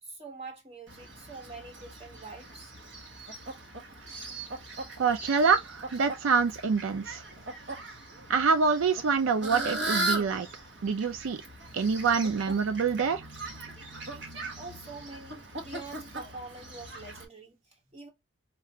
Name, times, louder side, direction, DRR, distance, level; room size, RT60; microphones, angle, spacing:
voice 1, 0.0-2.7 14.6-18.1, right 3 dB, 30° right, 1.2 m, -45 dB
Fowl, 0.9-17.2, right 2 dB, 60° right, 1.2 m, -39 dB
voice 2, 5.0-7.2 8.3-10.5 10.8-11.4 11.7-13.3, right 5 dB, 80° right, 0.4 m, -26 dB
4.6 x 2.4 x 2.7 m
head